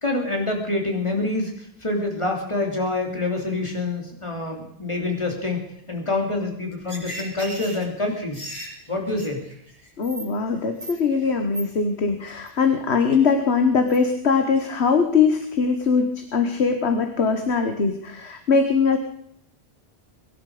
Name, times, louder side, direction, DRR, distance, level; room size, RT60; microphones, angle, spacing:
voice 1, 0.0-5.6 5.9-8.5 8.9-9.4, left 2 dB, 25° left, 1 dB, 3.4 m, -26 dB
sound 1, 6.7-10.2 10.5-11.2 11.5-11.6 12.3-12.5 12.9-13.1 13.9-14.0 14.3-14.6, right 1 dB, 30° right, 8.3 m, -37 dB
voice 2, 10.0-19.0, left 5 dB, 80° left, 6 dB, 1.6 m, -21 dB
23.5 x 11.5 x 5.0 m, 0.71 s
omnidirectional pair, 1.1 m